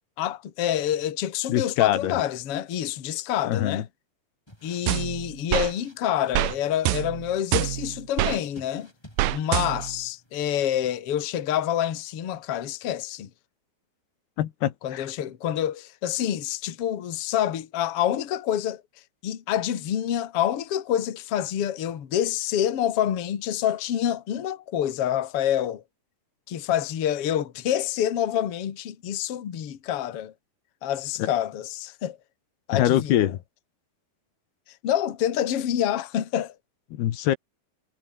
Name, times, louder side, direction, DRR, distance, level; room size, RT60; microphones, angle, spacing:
voice 1, 0.2-3.9 4.6-8.9 9.3-13.3 14.8-18.8 19.2-25.8 26.5-30.3 30.8-32.2 32.7-33.3 34.8-36.5, left 10 dB, 45° left, 2.2 m, -27 dB
voice 2, 1.5-2.2 3.4-3.8 14.4-15.1 31.2-31.3 32.7-33.4 36.9-37.4, left 12 dB, 80° left, 3.5 m, -24 dB
sound 1, 4.5-10.9, left 1 dB, 5° left, 5.6 m, -54 dB
sound 2, 4.9-5.7 6.3-6.5 6.8-8.4 9.2-10.0, right 16 dB, 75° right, 2.2 m, -26 dB
omnidirectional pair, 4.7 m